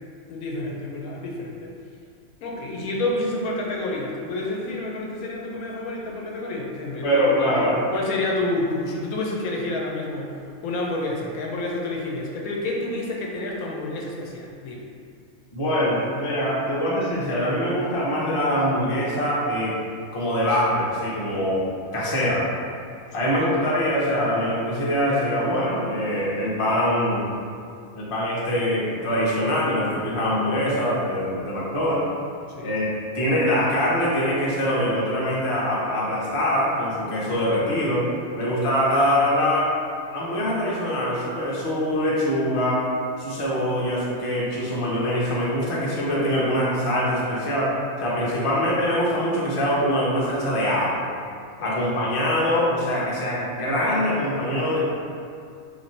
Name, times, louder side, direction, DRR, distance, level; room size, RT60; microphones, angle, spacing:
voice 1, 0.3-1.7 2.4-7.5 7.9-14.8 23.1-23.3 32.5-32.7 38.3-38.5 48.4-48.5 51.6-52.0, left 2 dB, 80° left, -1 dB, 1.1 m, -29 dB
voice 2, 7.0-7.8 15.5-19.8 20.1-21.6 21.9-22.4 23.1-27.3 27.9-32.0 32.6-38.0 38.3-39.7 40.1-42.9 43.2-47.7 48.0-51.0 51.6-54.8, equal, 35° left, -6 dB, 0.6 m, -23 dB
3.1 x 2.6 x 4.2 m, 2.3 s
omnidirectional pair, 1.5 m